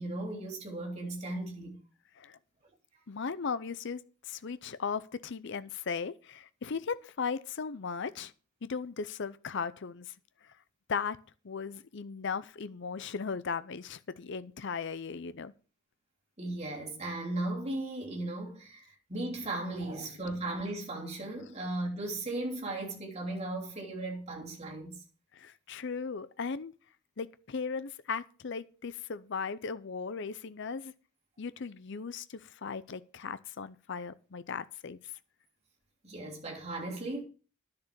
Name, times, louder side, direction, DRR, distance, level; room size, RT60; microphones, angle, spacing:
voice 1, 0.0-1.8 16.4-18.8 19.1-25.0 36.0-37.2, right 2 dB, 30° right, 3.1 m, -36 dB
voice 2, 3.1-4.0 4.3-8.3 8.6-10.1 10.9-11.2 11.4-15.5 19.9-20.0 25.3-26.7 27.2-30.9 31.4-35.0, left 5 dB, 60° left, 0.6 m, -37 dB
10.5 x 6.7 x 6.8 m
head